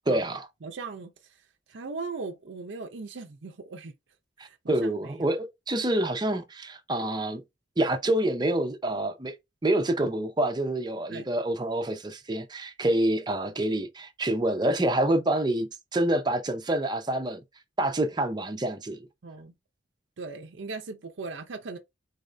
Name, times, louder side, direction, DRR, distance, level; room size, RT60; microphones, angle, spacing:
voice 1, 0.1-0.5 4.4-7.4 7.8-9.3 9.6-17.4 17.8-19.1, right 1 dB, 25° right, 0.6 m, -27 dB
voice 2, 0.6-1.1 1.7-3.9 4.4-5.3 11.1-11.2 12.8-13.0 19.2-19.5 20.2-21.8, right 3 dB, 75° right, 0.6 m, -38 dB
4.1 x 2.6 x 3.2 m
head